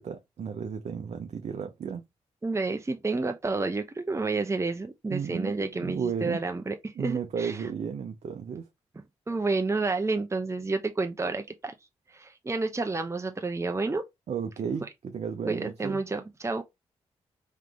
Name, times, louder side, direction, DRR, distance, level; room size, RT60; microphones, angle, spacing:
voice 1, 0.0-2.0 5.1-6.4 6.9-8.7 14.3-16.0, right 6 dB, 60° right, 0.7 m, -33 dB
voice 2, 2.4-7.7 9.3-11.7 12.1-14.0 15.5-16.6, right 3 dB, 20° right, 0.8 m, -30 dB
3.7 x 3.1 x 3.5 m
supercardioid pair, 45°, 13 cm